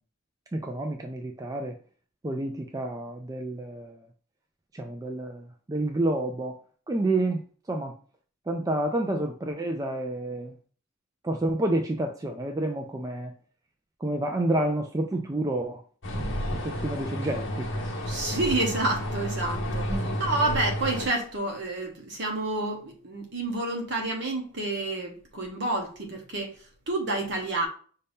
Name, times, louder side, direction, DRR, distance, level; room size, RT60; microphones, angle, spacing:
voice 1, 0.5-1.7 2.2-4.0 4.7-6.6 6.9-7.4 7.7-8.0 8.5-10.5 11.2-13.3 14.0-15.8 16.1-17.7 19.9-20.2, right 1 dB, 15° right, 0.3 m, -29 dB
sound 1, 16.0-21.1, equal, 60° left, 1.1 m, -31 dB
voice 2, 18.1-26.6 26.9-27.7, right 2 dB, 55° right, 1.1 m, -29 dB
5.4 x 2.7 x 3.5 m
head